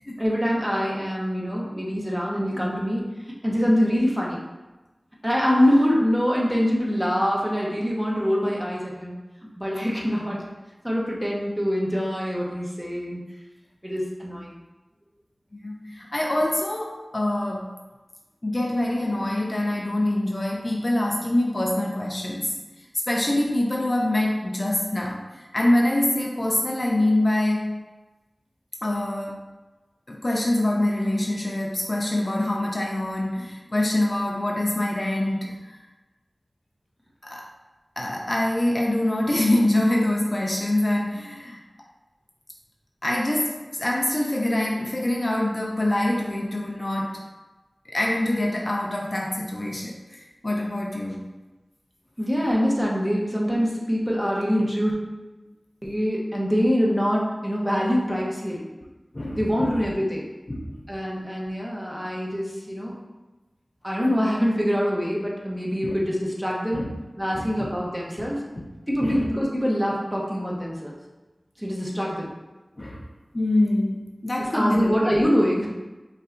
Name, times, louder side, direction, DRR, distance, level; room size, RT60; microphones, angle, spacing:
voice 1, 0.2-3.0 3.4-4.4 5.2-9.2 9.6-10.4 10.8-13.2 13.8-14.5 52.2-54.9 55.8-58.6 59.3-60.3 60.9-62.9 63.8-66.9 67.2-68.4 68.9-71.0 71.6-72.3 74.5-75.7, equal, 10° right, -4 dB, 0.9 m, -24 dB
voice 2, 15.5-17.7 18.4-22.5 23.1-27.8 28.8-29.5 30.1-35.8 37.2-37.5 38.0-41.6 43.0-47.2 47.9-51.3 59.1-59.8 60.5-60.8 65.8-65.9 66.7-66.9 67.3-67.7 68.1-68.2 68.6-68.7 69.0-69.3 72.8-73.0 73.3-74.9, left 1 dB, 45° left, -1 dB, 0.5 m, -25 dB
5.3 x 3.2 x 2.6 m, 1.1 s
wide cardioid pair, 60°, 0 cm